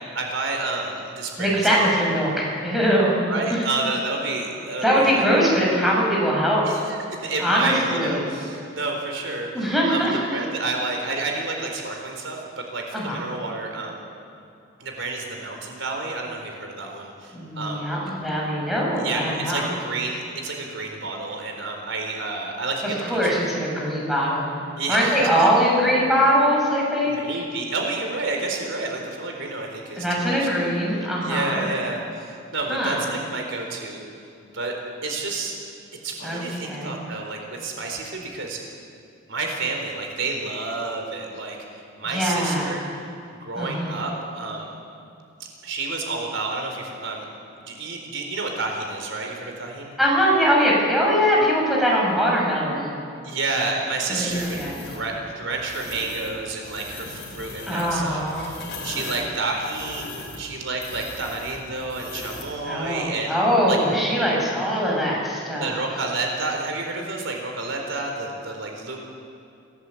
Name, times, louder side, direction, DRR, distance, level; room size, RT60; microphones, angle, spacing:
voice 1, 0.1-1.5 3.3-5.2 6.6-9.5 9.9-14.0 14.8-17.9 19.0-23.4 24.7-25.5 27.0-34.0 34.5-34.7 35.0-35.5 36.0-38.6 39.3-41.6 42.0-42.8 43.3-44.7 45.6-47.3 47.7-49.9 53.2-58.6 58.8-63.3 63.7-63.8 65.6-69.1, right 3 dB, 75° right, 2 dB, 4.2 m, -30 dB
voice 2, 1.4-3.1 4.8-6.7 7.4-8.2 9.5-10.2 12.9-13.2 17.3-19.7 23.1-24.5 24.9-27.2 29.9-31.6 32.7-33.1 36.2-37.0 42.1-42.7 43.5-44.0 50.0-53.0 54.1-54.9 57.7-58.5 62.6-65.8, equal, ahead, -4 dB, 6.9 m, -22 dB
sound 1, 54.3-55.0 55.6-56.3 56.6-62.6, left 3 dB, 60° left, 4.9 m, -38 dB
27.0 x 18.0 x 8.5 m, 2.6 s
head